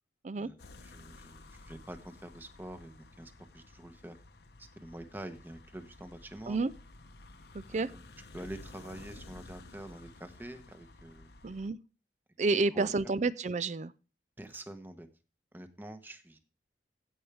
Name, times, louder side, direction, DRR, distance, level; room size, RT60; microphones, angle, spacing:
sound 1, 0.6-11.7, left 2 dB, 70° left, 0.9 m, -53 dB
voice 1, 0.8-4.2 4.6-6.6 7.7-8.0 8.3-11.3 12.7-12.9 14.4-15.1 15.5-16.4, right 1 dB, 10° right, 1.0 m, -46 dB
voice 2, 7.5-7.9 11.4-11.8 12.4-13.9, right 3 dB, 40° right, 0.4 m, -30 dB
15.5 x 6.3 x 3.4 m
head